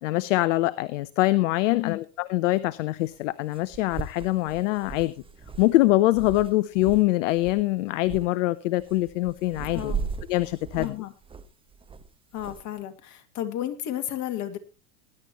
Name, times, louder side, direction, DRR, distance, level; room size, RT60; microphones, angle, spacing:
voice 1, 0.0-5.1 5.6-10.0 10.3-11.0, left 17 dB, 55° left, 18 dB, 0.7 m, -24 dB
sound 1, 1.2-1.3 3.1-3.2 3.5-7.1 7.3-7.6 8.0-8.3 8.8-12.6, right 6 dB, 10° right, 1.0 m, -38 dB
voice 2, 10.8-11.1 12.3-14.6, left 12 dB, 40° left, 8 dB, 2.1 m, -32 dB
20.0 x 11.0 x 3.0 m, 0.28 s
hypercardioid pair, 100°, 45 cm